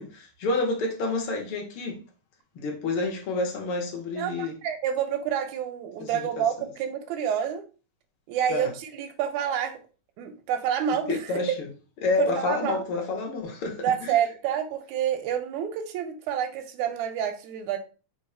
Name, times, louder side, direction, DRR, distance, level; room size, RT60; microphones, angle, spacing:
voice 1, 0.0-2.0 2.5-4.6 6.0-6.4 8.5-8.7 11.1-11.7 12.0-14.1, left 3 dB, 65° left, 1.3 m, -29 dB
voice 2, 4.2-7.6 8.3-9.8 10.2-11.3 12.4-12.8 13.8-17.8, right 9 dB, 85° right, 1.9 m, -28 dB
4.6 x 2.2 x 4.3 m
omnidirectional pair, 3.3 m